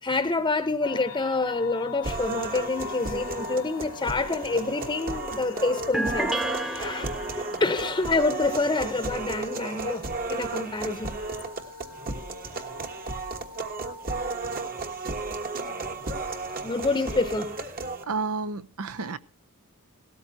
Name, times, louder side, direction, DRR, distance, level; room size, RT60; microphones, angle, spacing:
voice 1, 0.0-6.3 6.6-7.1 7.6-10.0 10.3-11.1 16.6-17.6, left 3 dB, 20° left, 0.9 m, -27 dB
sound 1, 0.8-17.3, left 6 dB, 90° left, 0.9 m, -43 dB
sound 2, 2.0-18.0, right 3 dB, 45° right, 1.4 m, -34 dB
sound 3, 5.9-7.7, right 1 dB, ahead, 0.5 m, -30 dB
voice 2, 18.0-19.2, right 4 dB, 75° right, 0.7 m, -31 dB
17.5 x 13.5 x 2.8 m
head